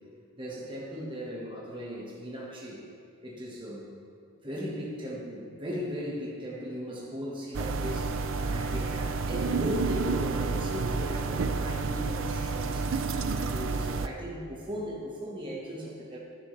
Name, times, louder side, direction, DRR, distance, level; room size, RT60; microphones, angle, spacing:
voice 1, 0.3-2.8 3.2-3.9 4.4-16.2, equal, 20° right, -4 dB, 1.3 m, -38 dB
sound 1, 7.5-14.1, right 4 dB, 55° right, 0.4 m, -30 dB
11.0 x 11.0 x 3.2 m, 2.5 s
head